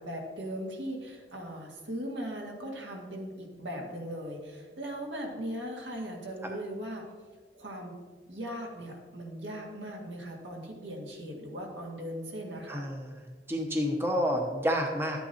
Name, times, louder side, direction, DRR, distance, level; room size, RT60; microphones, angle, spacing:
voice 1, 0.0-7.1 7.5-7.9 8.3-12.8, equal, 80° right, 0 dB, 1.9 m, -39 dB
voice 2, 12.7-15.2, equal, 15° right, 1 dB, 0.8 m, -30 dB
12.0 x 8.9 x 2.8 m, 1.5 s
head